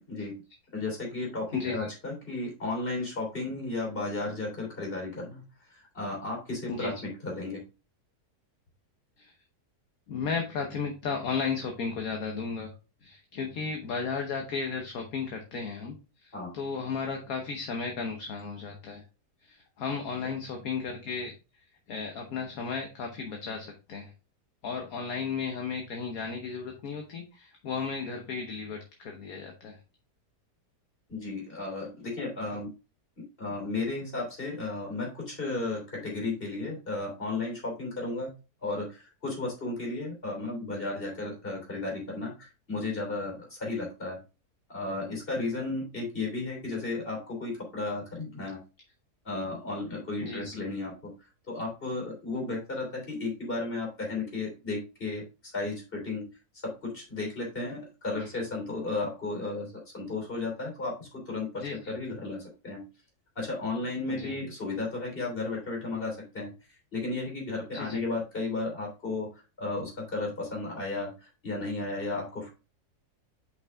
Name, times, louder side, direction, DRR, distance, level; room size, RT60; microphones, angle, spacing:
voice 1, 0.7-5.4 5.7-7.6 16.3-16.5 31.1-32.7 33.4-38.3 38.6-44.2 44.7-48.6 49.2-51.1 51.5-55.2 55.5-56.2 56.6-62.8 63.3-66.5 66.9-69.3 69.6-72.5, left 3 dB, 35° left, 0 dB, 3.2 m, -34 dB
voice 2, 1.5-1.9 6.7-6.9 9.2-9.3 10.1-12.7 13.0-19.0 19.4-21.3 21.9-24.1 24.6-29.8 50.2-50.6 58.1-58.3 61.6-61.9 64.1-64.4 67.7-68.0, left 5 dB, 65° left, 3 dB, 1.4 m, -34 dB
5.7 x 5.6 x 3.5 m, 0.30 s
omnidirectional pair, 1.7 m